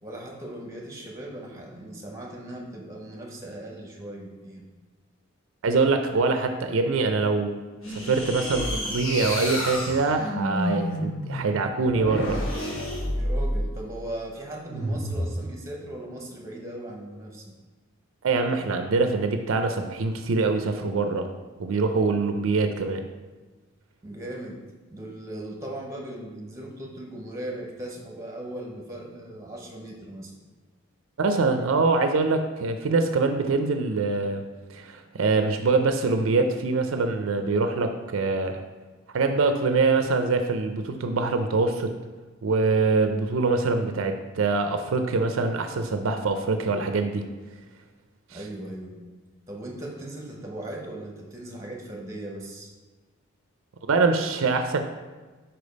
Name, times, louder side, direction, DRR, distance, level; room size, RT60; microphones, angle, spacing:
voice 1, 0.0-4.7 13.2-17.5 24.0-24.6 24.9-30.3 48.3-49.0 49.5-52.7, right 1 dB, 15° right, 0 dB, 1.0 m, -38 dB
voice 2, 5.6-7.6 7.9-12.4 18.2-21.3 21.6-23.1 31.2-34.4 34.7-38.6 39.1-41.9 42.4-47.2 48.3-48.4 53.9-54.8, right 3 dB, 70° right, 6 dB, 0.5 m, -24 dB
sound 1, 7.8-13.8 14.7-15.3, equal, 65° left, 1.5 m, -29 dB
5.0 x 4.5 x 5.2 m, 1.3 s
head